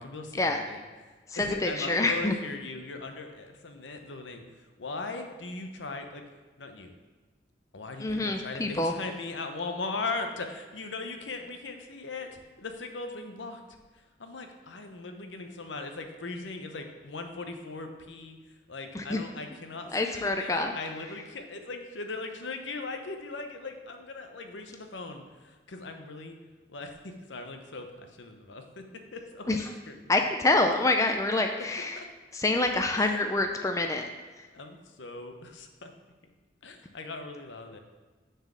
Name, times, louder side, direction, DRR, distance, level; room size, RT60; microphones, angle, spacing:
voice 1, 0.0-6.2 6.6-6.9 7.7-13.6 13.9-26.3 26.7-28.8 29.1-30.3 32.0-32.1 33.0-33.2 34.5-35.9 36.6-37.8, left 3 dB, 80° left, 5 dB, 0.8 m, -39 dB
voice 2, 1.3-2.3 8.0-8.9 18.9-19.2 19.9-20.7 29.5-29.6 30.1-32.0 32.3-34.1, left 2 dB, 15° left, 4 dB, 0.4 m, -26 dB
6.4 x 4.6 x 6.1 m, 1.3 s
head